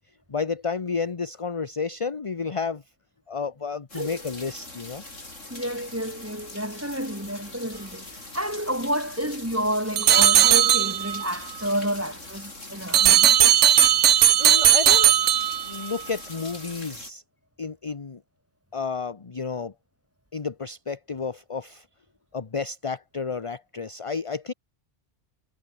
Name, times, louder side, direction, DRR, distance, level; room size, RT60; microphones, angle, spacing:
voice 1, 0.3-2.8 3.3-5.0 14.4-15.1 15.6-17.2 17.6-18.2 18.7-19.7 20.3-21.8 22.3-24.5, left 5 dB, 30° left, 0.9 m, -31 dB
sound 1, 3.9-17.1, left 2 dB, 85° left, 5.9 m, -42 dB
voice 2, 5.5-13.4, equal, 10° right, 5.7 m, -30 dB
sound 2, 10.0-11.3 12.9-15.9, right 10 dB, 70° right, 1.1 m, -17 dB
omnidirectional pair, 1.3 m